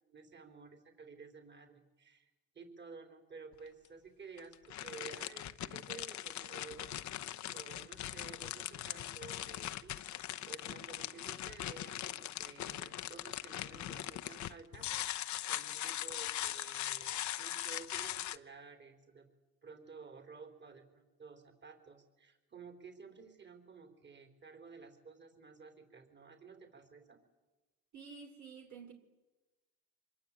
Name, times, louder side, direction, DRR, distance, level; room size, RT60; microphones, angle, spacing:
voice 1, 0.0-7.2 7.5-19.3 19.6-27.2, right 4 dB, 35° right, 3.9 m, -53 dB
sound 1, 3.5-3.6 4.4-18.4, left 13 dB, 70° left, 0.8 m, -41 dB
voice 2, 27.9-28.9, right 5 dB, 65° right, 3.4 m, -50 dB
25.5 x 22.5 x 8.6 m
cardioid pair, 90°, 30 cm